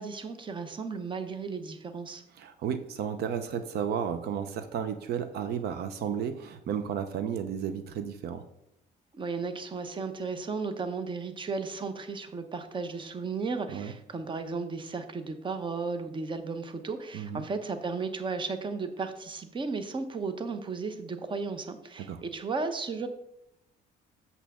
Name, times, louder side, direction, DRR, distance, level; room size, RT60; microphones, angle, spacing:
voice 1, 0.0-2.2 9.1-23.1, right 4 dB, 30° right, 9 dB, 0.9 m, -34 dB
voice 2, 2.3-8.4 13.7-13.9 17.1-17.4 22.0-22.2, right 8 dB, 70° right, 10 dB, 0.7 m, -33 dB
8.2 x 7.0 x 3.7 m, 0.81 s
cardioid pair, 110°, 17 cm